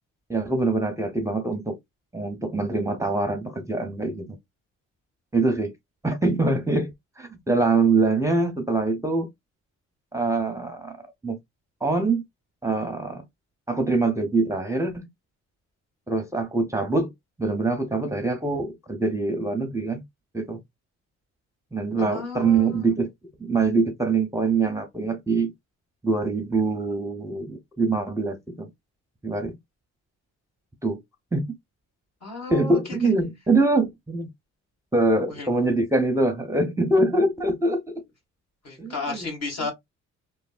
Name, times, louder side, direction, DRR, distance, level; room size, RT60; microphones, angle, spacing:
voice 1, 0.3-1.8 2.1-4.4 5.3-5.7 6.0-9.3 10.1-10.9 11.2-11.4 11.8-12.2 12.6-13.2 13.7-15.1 16.1-17.1 17.4-20.0 20.3-20.6 21.7-23.1 23.4-25.5 26.0-28.7 29.2-29.6 30.8-31.0 31.3-31.5 32.5-34.3 34.9-37.8 38.8-39.3, right 3 dB, 10° right, 0.6 m, -24 dB
voice 2, 22.0-22.9 32.2-32.8 35.3-35.7 38.6-39.7, left 3 dB, 55° left, 1.8 m, -33 dB
3.2 x 2.2 x 2.4 m
cardioid pair, 90°, 30 cm